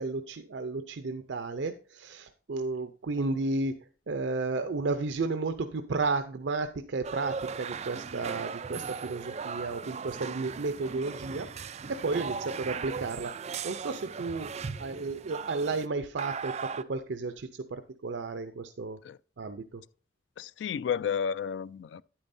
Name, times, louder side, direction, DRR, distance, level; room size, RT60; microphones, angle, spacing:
voice 1, 0.0-3.8 4.1-14.5 14.8-19.0 19.4-19.8, right 3 dB, 85° right, 0.5 m, -33 dB
sound 1, 7.0-15.9 16.2-16.8, right 5 dB, 40° right, 0.4 m, -38 dB
voice 2, 20.4-22.0, left 7 dB, 85° left, 0.3 m, -32 dB
9.8 x 8.8 x 2.6 m
head